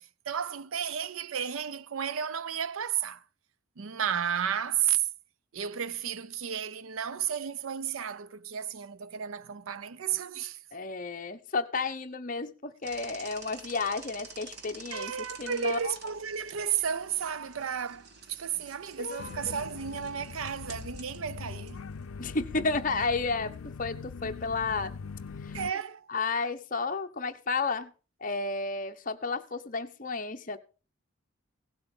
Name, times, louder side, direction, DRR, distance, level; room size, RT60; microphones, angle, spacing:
voice 1, 0.0-3.2 3.8-5.1 5.5-10.6 14.9-21.9 25.5-26.1, right 8 dB, 75° right, 0.5 m, -33 dB
voice 2, 10.7-15.1 15.4-15.9 19.0-19.4 22.2-23.5 23.8-24.9 25.4-25.6 26.1-27.9 28.2-30.6, left 4 dB, 40° left, 0.9 m, -32 dB
sound 1, 12.8-23.2, right 4 dB, 50° right, 1.8 m, -50 dB
sound 2, 19.2-25.7, left 5 dB, 90° left, 0.5 m, -42 dB
16.5 x 7.6 x 5.3 m
head